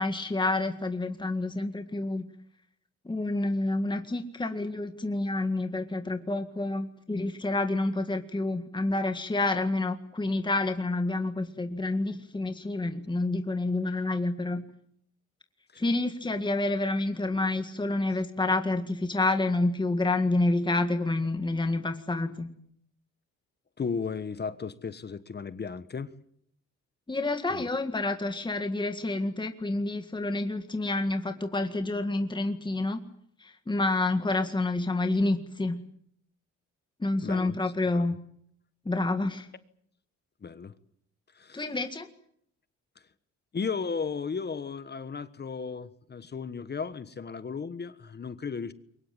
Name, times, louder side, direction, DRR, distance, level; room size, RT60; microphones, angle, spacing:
voice 1, 0.0-2.3 3.1-14.6 15.8-22.5 27.1-33.0 33.4-35.8 37.0-38.2 38.9-39.5 41.5-42.1, left 2 dB, 15° left, 1.9 m, -28 dB
voice 2, 23.8-26.1 27.5-27.6 34.4-34.5 37.2-37.6 37.9-38.1 40.4-40.8 41.3-41.6 43.5-48.7, left 5 dB, 35° left, 1.3 m, -35 dB
23.5 x 20.0 x 9.0 m
cardioid pair, 90°, 30 cm